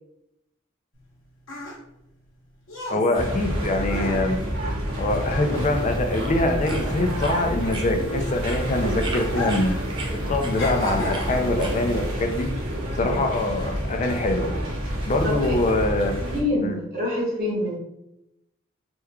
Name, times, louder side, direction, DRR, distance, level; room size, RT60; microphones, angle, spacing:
sound 1, 1.0-6.3 6.6-8.7 9.3-9.8 10.1-11.6 12.3-12.5, left 1 dB, 70° left, 0.9 m, -35 dB
voice 1, 2.9-4.4 5.0-9.8 10.3-12.5 13.0-14.5 15.1-16.2 16.6-16.8, left 2 dB, 35° left, 5 dB, 0.4 m, -24 dB
sound 2, 3.1-16.4, equal, 85° right, 1.0 m, -28 dB
sound 3, 5.5-12.1, right 3 dB, 25° right, 0.6 m, -40 dB
voice 2, 15.2-15.5 16.2-17.8, left 1 dB, 50° right, -5 dB, 1.3 m, -26 dB
3.4 x 3.0 x 2.2 m, 0.84 s
head